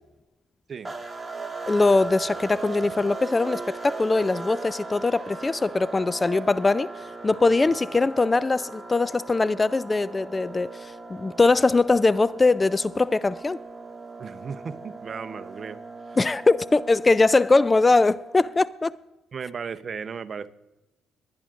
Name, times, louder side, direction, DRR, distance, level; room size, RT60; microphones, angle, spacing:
sound 1, 0.8-18.7, right 3 dB, 20° right, 1.7 m, -38 dB
voice 1, 1.7-6.9 7.2-13.6 16.2-18.9, left 3 dB, 25° left, 0.3 m, -21 dB
voice 2, 14.2-15.8 16.1-16.2 19.3-20.5, right 6 dB, 45° right, 0.7 m, -35 dB
21.5 x 10.0 x 2.5 m
supercardioid pair, 70°, 0 cm